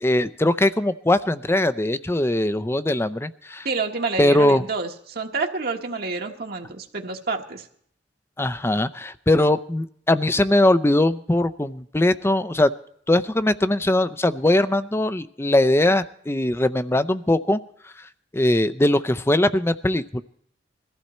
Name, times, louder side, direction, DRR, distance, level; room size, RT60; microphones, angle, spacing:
voice 1, 0.0-3.7 4.2-4.6 8.4-12.7 13.1-17.6 18.3-20.2, left 1 dB, 15° left, 13 dB, 0.5 m, -20 dB
voice 2, 3.6-7.7, right 4 dB, 60° right, 3 dB, 1.4 m, -28 dB
22.0 x 15.0 x 4.3 m, 0.65 s
head